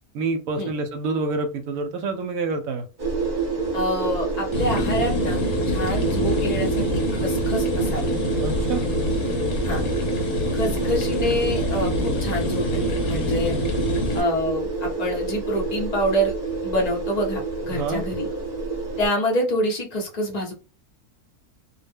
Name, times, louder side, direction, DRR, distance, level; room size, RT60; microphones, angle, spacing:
voice 1, 0.1-2.9 8.4-8.8 17.7-18.0, right 3 dB, 70° right, 7 dB, 0.9 m, -27 dB
sound 1, 3.0-19.1, right 3 dB, 35° right, 1.0 m, -27 dB
voice 2, 3.7-8.1 9.6-9.8 10.5-13.5 14.1-16.3 16.6-18.3 19.0-20.5, equal, 40° left, 0 dB, 0.6 m, -26 dB
sound 2, 4.5-14.2, left 2 dB, 70° left, 1.2 m, -27 dB
2.5 x 2.1 x 3.4 m, 0.33 s
omnidirectional pair, 1.6 m